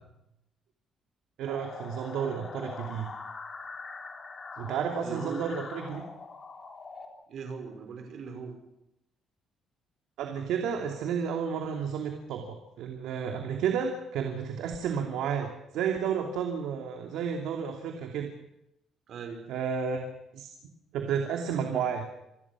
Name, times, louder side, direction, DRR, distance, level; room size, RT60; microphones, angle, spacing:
voice 1, 1.4-3.1 4.6-6.0 10.2-18.3 19.5-20.0 20.3-20.5 20.9-22.1, right 7 dB, 85° right, 3 dB, 2.8 m, -31 dB
sound 1, 1.5-7.1, left 4 dB, 25° left, 3.5 m, -42 dB
voice 2, 5.0-5.5 7.3-8.5 19.1-19.4, right 5 dB, 50° right, 5 dB, 5.7 m, -39 dB
27.5 x 20.5 x 6.3 m, 0.85 s
cardioid pair, 170°, 0 cm